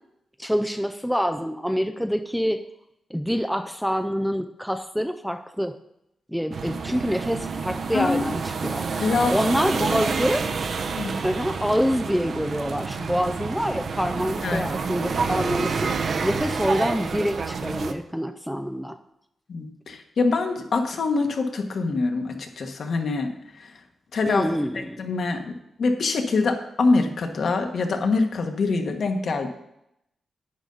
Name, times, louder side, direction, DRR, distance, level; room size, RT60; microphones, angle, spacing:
voice 1, 0.4-2.6 3.1-5.7 6.3-8.8 9.3-10.4 11.2-15.9 16.2-19.0 24.3-25.1, equal, ahead, 8 dB, 0.4 m, -26 dB
sound 1, 6.5-17.9, right 5 dB, 50° right, 0.8 m, -28 dB
voice 2, 7.9-8.3 9.0-9.5 11.0-11.1 14.4-14.7 19.5-23.3 23.6-23.7 24.1-24.6 25.0-29.5, left 3 dB, 55° left, 5 dB, 1.3 m, -24 dB
11.0 x 9.1 x 4.0 m, 0.80 s
wide cardioid pair, 170°, 0 cm